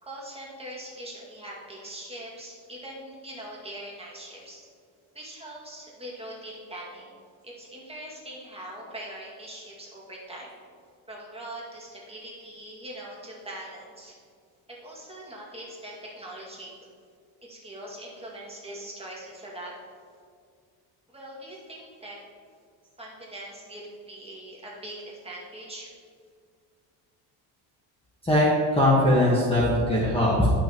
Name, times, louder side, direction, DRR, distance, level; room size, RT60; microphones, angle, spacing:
voice 1, 0.0-4.7 5.1-7.1 7.4-10.5 11.1-14.1 14.8-16.7 17.4-19.7 21.1-22.2 23.0-23.8 24.1-25.9, right 1 dB, 15° right, -5 dB, 2.1 m, -41 dB
voice 2, 28.7-30.5, left 1 dB, 10° left, -6 dB, 1.4 m, -20 dB
11.0 x 6.2 x 3.0 m, 2.1 s
cardioid pair, 115°, 45 cm